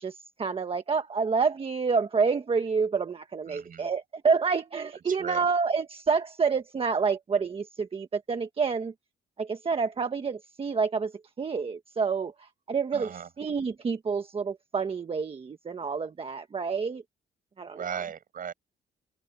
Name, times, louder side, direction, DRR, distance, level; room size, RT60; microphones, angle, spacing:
voice 1, 0.0-8.9 9.4-11.1 11.4-17.0 17.6-18.0, right 5 dB, 30° right, 1.3 m, -28 dB
voice 2, 3.5-3.9 5.1-5.5 12.9-13.3 17.7-18.5, right 8 dB, 50° right, 7.2 m, -37 dB
open air
cardioid pair, 135°, 18 cm